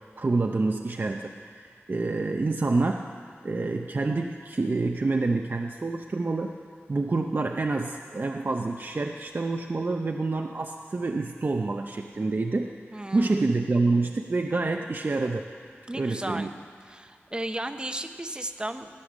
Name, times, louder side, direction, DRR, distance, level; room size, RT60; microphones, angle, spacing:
voice 1, 0.2-1.3 1.6-3.1 3.4-6.5 6.9-15.5 15.9-16.5, right 3 dB, 50° right, 3 dB, 0.6 m, -27 dB
voice 2, 12.9-13.5 15.9-16.5 16.8-18.9, right 1 dB, 20° right, 7 dB, 0.8 m, -34 dB
17.0 x 9.9 x 7.3 m, 2.1 s
wide cardioid pair, 85°, 4 cm